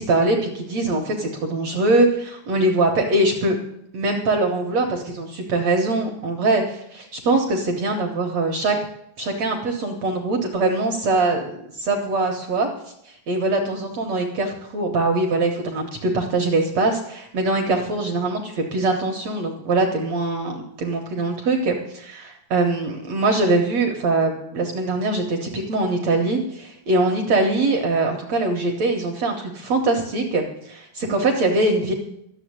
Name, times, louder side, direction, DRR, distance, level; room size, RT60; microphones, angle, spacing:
voice 1, 0.0-3.6 3.9-8.7 9.2-12.7 13.3-31.9, right 2 dB, 70° right, 2 dB, 1.6 m, -22 dB
13.5 x 7.1 x 9.6 m, 0.77 s
omnidirectional pair, 4.9 m